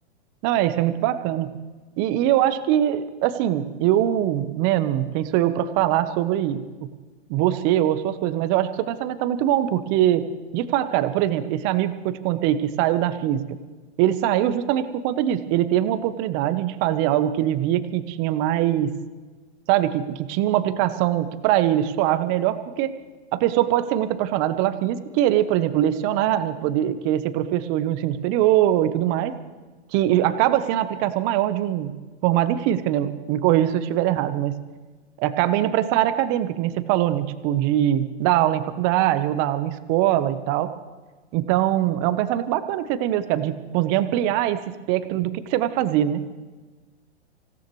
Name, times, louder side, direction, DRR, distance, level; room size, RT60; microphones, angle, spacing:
voice 1, 0.4-1.5 2.0-6.6 7.3-10.3 10.5-13.4 14.0-18.9 19.7-22.9 23.3-29.4 29.9-31.9 32.2-34.5 35.2-40.7 41.3-46.2, right 12 dB, 35° right, 12 dB, 1.0 m, -22 dB
25.5 x 17.0 x 3.2 m, 1.3 s
hypercardioid pair, 135°, 33 cm